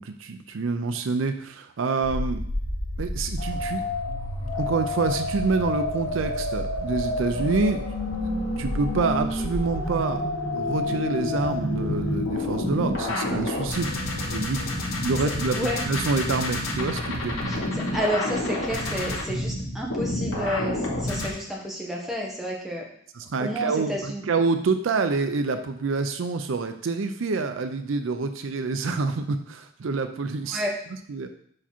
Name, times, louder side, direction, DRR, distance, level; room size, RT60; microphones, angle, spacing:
voice 1, 0.0-2.4 3.0-3.8 4.6-7.8 8.2-10.3 10.5-17.9 23.1-30.6 31.1-31.3, right 4 dB, 70° right, 8 dB, 0.5 m, -27 dB
sound 1, 2.0-21.3, left 1 dB, 75° left, 1.3 m, -29 dB
voice 2, 17.9-22.8 23.4-24.2 30.5-30.7, equal, ahead, -3 dB, 1.1 m, -30 dB
5.5 x 4.8 x 4.3 m, 0.64 s
head